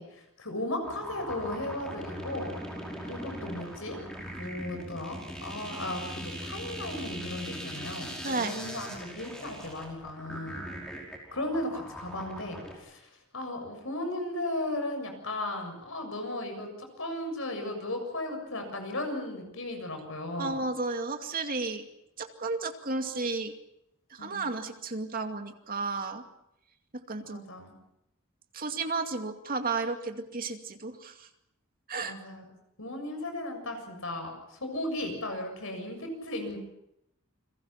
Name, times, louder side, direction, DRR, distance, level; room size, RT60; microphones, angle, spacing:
voice 1, 0.0-2.5 3.1-4.0 4.4-10.6 11.3-20.7 24.2-24.5 27.2-27.7 32.0-32.4 32.8-36.6, left 1 dB, 65° left, 5 dB, 7.1 m, -36 dB
sound 1, 0.8-12.7, equal, 5° left, 5.5 m, -40 dB
voice 2, 20.4-21.8 22.2-23.5 24.1-26.2 27.1-27.4 28.5-31.3 31.9-32.1, right 3 dB, 40° right, 5 dB, 2.4 m, -33 dB
29.5 x 22.0 x 5.9 m, 0.82 s
head